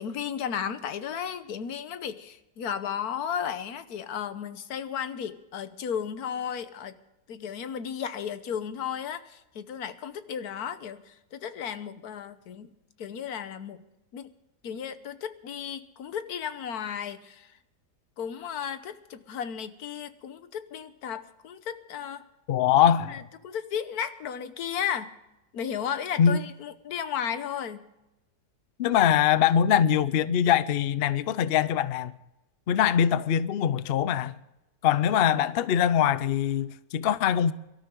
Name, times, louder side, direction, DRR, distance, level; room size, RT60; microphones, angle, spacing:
voice 1, 0.0-7.0 7.3-12.7 13.0-13.8 14.1-14.3 14.6-17.6 18.2-22.3 23.1-25.1 25.5-27.8, left 8 dB, 65° left, 1.4 m, -34 dB
voice 2, 22.5-23.2 26.2-26.4 28.8-32.1 32.7-34.3 34.8-37.5, left 9 dB, 85° left, 0.5 m, -23 dB
23.5 x 12.5 x 3.7 m
omnidirectional pair, 1.8 m